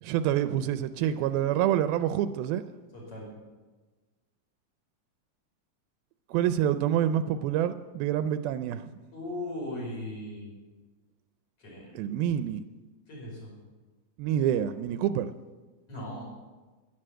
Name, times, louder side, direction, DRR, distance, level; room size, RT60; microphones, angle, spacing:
voice 1, 0.0-2.6 6.3-8.9 12.0-12.6 14.2-15.3, right 10 dB, 85° right, 11 dB, 2.4 m, -27 dB
voice 2, 2.9-3.3 9.1-10.5 11.6-12.0 13.1-13.5 15.9-16.3, left 1 dB, 40° left, -4 dB, 6.1 m, -38 dB
11.0 x 11.0 x 7.7 m, 1.3 s
omnidirectional pair, 4.2 m